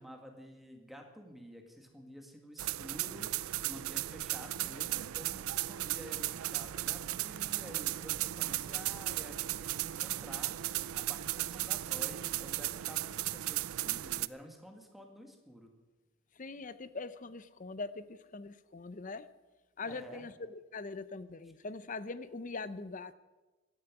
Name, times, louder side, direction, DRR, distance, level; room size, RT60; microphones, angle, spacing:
voice 1, 0.0-15.7 19.8-20.2, equal, ahead, 3 dB, 1.8 m, -51 dB
sound 1, 2.6-14.3, right 15 dB, 80° right, 0.4 m, -36 dB
voice 2, 16.3-19.3 19.8-23.1, left 3 dB, 35° left, 14 dB, 0.6 m, -42 dB
16.5 x 12.5 x 6.1 m, 1.2 s
head